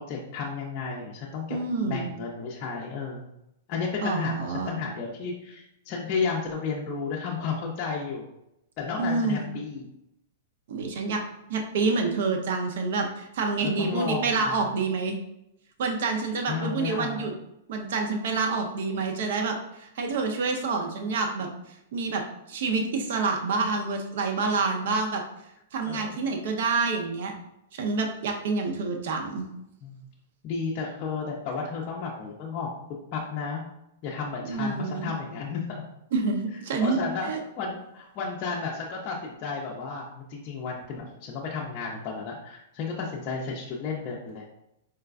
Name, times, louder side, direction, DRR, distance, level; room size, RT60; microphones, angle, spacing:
voice 1, 0.0-1.6 1.9-3.3 3.7-8.2 8.8-9.9 13.6-14.6 16.5-17.3 25.9-26.3 29.8-30.1 30.4-32.7 33.1-33.6 34.0-35.9 36.8-37.3 37.6-44.4, left 5 dB, 35° left, -3 dB, 0.5 m, -33 dB
voice 2, 1.5-2.1 4.0-4.8 9.0-9.5 10.7-11.2 11.5-15.2 15.8-17.3 17.7-21.5 21.9-22.2 22.5-25.2 25.7-27.3 27.7-29.5 34.4-35.1 36.1-37.0 37.2-37.4, right 4 dB, 65° right, 3 dB, 0.5 m, -27 dB
4.5 x 2.2 x 2.4 m, 0.82 s
hypercardioid pair, 150°, 0 cm